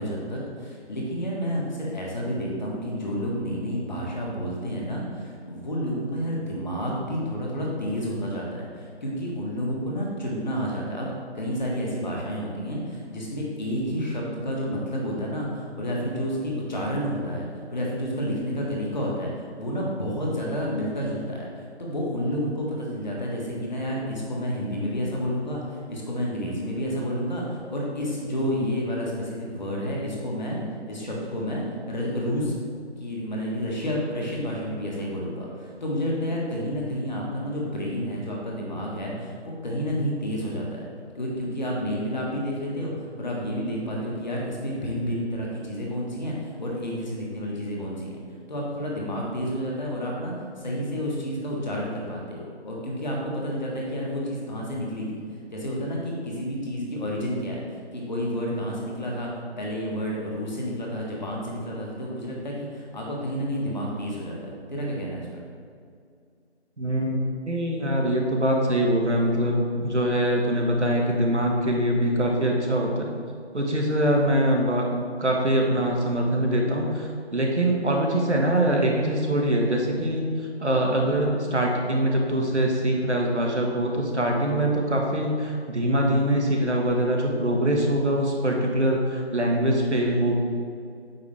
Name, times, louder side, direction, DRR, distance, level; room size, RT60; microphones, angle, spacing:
voice 1, 0.0-19.3 19.6-30.6 30.9-32.6 33.0-40.9 41.1-42.9 43.2-48.2 48.5-55.2 55.5-59.3 59.6-65.4, equal, 40° left, -3 dB, 1.4 m, -30 dB
voice 2, 66.8-73.1 73.5-80.3 80.6-90.4, right 1 dB, 85° right, 0 dB, 1.5 m, -23 dB
8.4 x 5.1 x 3.3 m, 2.3 s
figure-of-eight pair, 160°, 34 cm